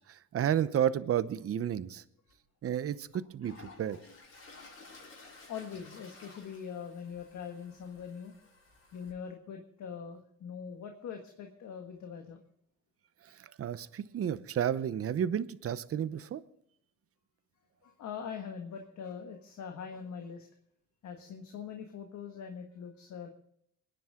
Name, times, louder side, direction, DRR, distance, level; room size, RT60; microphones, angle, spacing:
voice 1, 0.1-2.0 2.6-4.0 13.6-16.4, right 9 dB, 50° right, 14 dB, 0.8 m, -31 dB
Toilet flush, 2.3-2.4 2.9-9.1, left 3 dB, 50° left, 5.7 m, -54 dB
voice 2, 5.5-8.3 8.9-12.4 17.8-20.5 21.0-23.3, left 7 dB, 70° left, 4 dB, 1.6 m, -42 dB
22.5 x 10.5 x 3.7 m, 0.71 s
cardioid pair, 90°, 30 cm